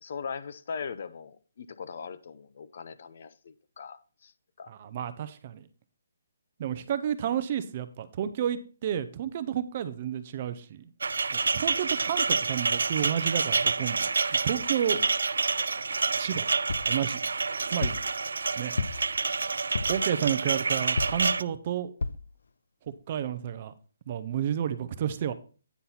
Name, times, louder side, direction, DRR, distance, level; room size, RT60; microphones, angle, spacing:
voice 1, 0.0-4.3 4.6-4.7 11.7-11.8 15.0-15.1, left 6 dB, 40° left, 0.5 m, -40 dB
voice 2, 4.7-5.6 6.6-10.9 11.3-14.1 14.4-15.0 16.2-16.5 16.9-17.2 17.7-18.0 18.6-18.7 19.9-21.9 23.1-23.7 24.1-25.3, right 9 dB, 25° right, 0.5 m, -31 dB
sound 1, 11.0-21.4, right 4 dB, 90° right, 0.4 m, -28 dB
sound 2, 16.7-17.0 17.8-18.1 18.8-19.2 19.7-20.1 21.0-21.3 22.0-22.3 22.9-23.0 23.2-23.3, left 3 dB, 80° left, 0.6 m, -31 dB
9.3 x 4.3 x 5.6 m
hypercardioid pair, 175°, 0 cm